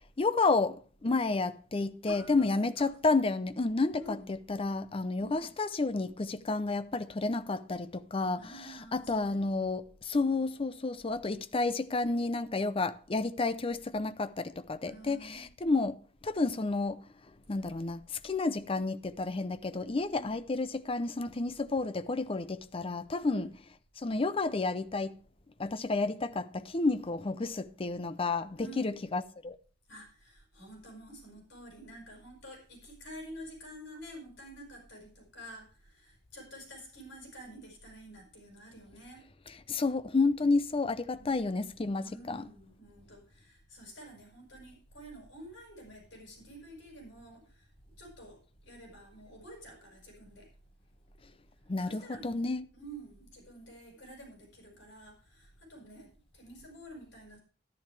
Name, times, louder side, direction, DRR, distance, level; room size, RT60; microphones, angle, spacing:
voice 1, 0.2-8.5 8.9-16.0 16.2-17.0 17.5-23.5 24.0-25.1 25.6-29.6 39.7-42.5 51.7-52.7, left 3 dB, 30° left, 0.5 m, -31 dB
voice 2, 2.0-2.5 2.8-2.9 3.9-4.4 5.2-5.5 8.3-9.5 14.8-15.5 20.1-20.4 23.3-23.5 28.6-28.9 29.9-39.2 41.2-41.5 41.9-47.7 48.0-50.5 51.8-57.4, right 1 dB, 75° left, 5.3 m, -49 dB
11.5 x 10.5 x 3.3 m
head